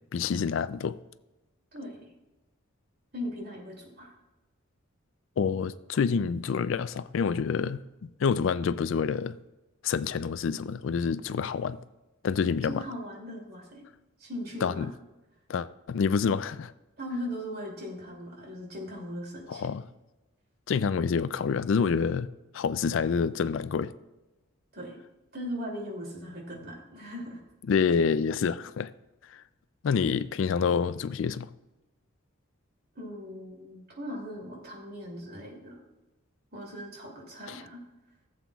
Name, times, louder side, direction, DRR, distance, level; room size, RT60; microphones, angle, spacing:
voice 1, 0.1-1.0 5.4-9.4 9.8-11.8 12.2-12.8 14.6-14.9 15.5-16.7 19.5-19.8 20.7-23.9 27.7-28.9 29.3-29.4 29.8-31.5 37.5-37.6, left 6 dB, 65° left, 0.3 m, -27 dB
voice 2, 1.7-2.0 3.1-4.1 12.7-13.8 14.2-14.9 17.0-19.7 24.7-25.0 25.3-27.4 32.9-35.8 36.5-37.8, equal, 50° right, 2.7 m, -39 dB
16.0 x 7.6 x 2.3 m
head